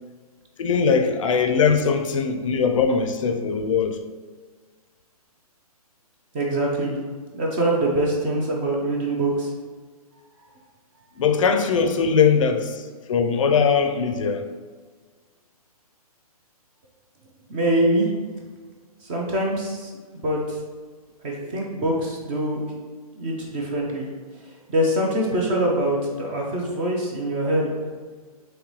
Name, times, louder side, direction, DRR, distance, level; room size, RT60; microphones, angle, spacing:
voice 1, 0.6-4.0 11.2-14.5, left 6 dB, 55° left, 0.4 m, -21 dB
voice 2, 6.3-7.0 7.3-9.5 17.5-18.1 19.0-20.6 21.2-22.6 23.2-24.1 24.7-27.7, right 1 dB, 15° right, 0.4 m, -24 dB
3.8 x 3.1 x 3.0 m
hypercardioid pair, 150°, 20 cm